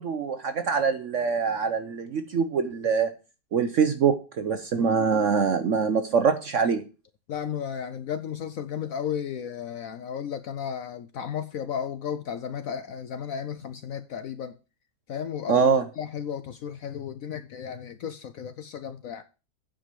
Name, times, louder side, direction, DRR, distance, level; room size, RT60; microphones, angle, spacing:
voice 1, 0.0-3.1 3.5-6.8 15.5-15.8, right 6 dB, 60° right, 0.8 m, -24 dB
voice 2, 7.3-14.5 15.1-15.7 16.0-19.2, left 8 dB, 65° left, 0.9 m, -34 dB
9.1 x 4.9 x 7.4 m
omnidirectional pair, 1.9 m